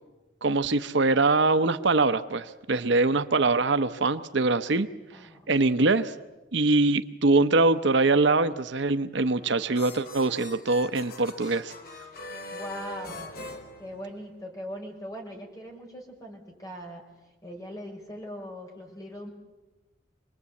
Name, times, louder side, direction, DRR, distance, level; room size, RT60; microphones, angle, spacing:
voice 1, 0.4-4.9 5.5-6.1 6.5-11.7, right 3 dB, 65° right, 11 dB, 0.8 m, -23 dB
voice 2, 5.1-5.5 12.5-13.5 13.8-17.0 17.4-19.3, equal, 20° left, 1 dB, 5.3 m, -40 dB
sound 1, 9.2-14.5, left 2 dB, 50° left, 2.4 m, -42 dB
26.5 x 21.0 x 8.4 m, 1.1 s
head